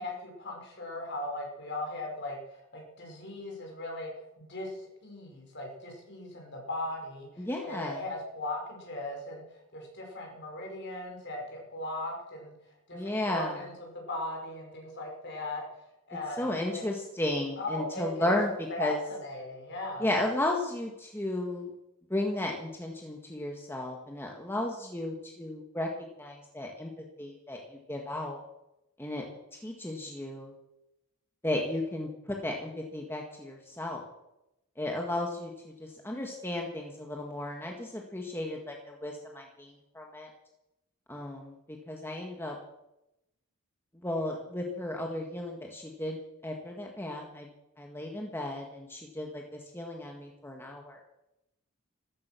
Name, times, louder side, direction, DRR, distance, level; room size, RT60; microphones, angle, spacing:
voice 1, 0.0-2.4 2.7-4.1 4.4-9.4 9.7-12.5 12.9-15.6 16.1-16.8 17.6-18.3 18.7-20.1, left 2 dB, 50° left, 1 dB, 5.7 m, -38 dB
voice 2, 7.4-8.0 12.9-13.6 16.4-18.5 18.8-19.0 20.0-21.7 22.1-25.9 26.2-26.9 27.2-28.4 29.0-29.2 29.5-30.5 31.4-34.0 34.8-40.3 41.1-42.6 43.9-47.5 47.8-51.0, left 1 dB, 10° left, 0 dB, 1.8 m, -34 dB
15.0 x 14.0 x 6.2 m, 0.87 s
head